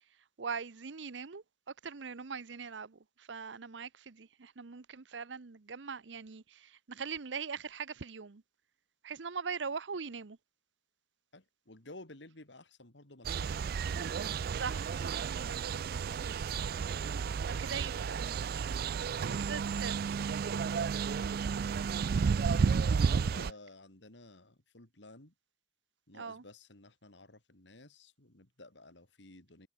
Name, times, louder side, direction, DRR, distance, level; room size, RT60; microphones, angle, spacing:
voice 1, 0.4-1.4 1.8-8.4 9.0-10.4 14.5-16.5 17.6-18.6 19.2-20.9 23.0-23.3 26.1-26.4, right 5 dB, 85° right, 0.8 m, -42 dB
voice 2, 11.3-13.7 22.1-22.3 22.8-25.3 26.1-29.7, left 2 dB, 75° left, 3.4 m, -54 dB
sound 1, 13.2-23.5, right 6 dB, 55° right, 0.3 m, -32 dB
head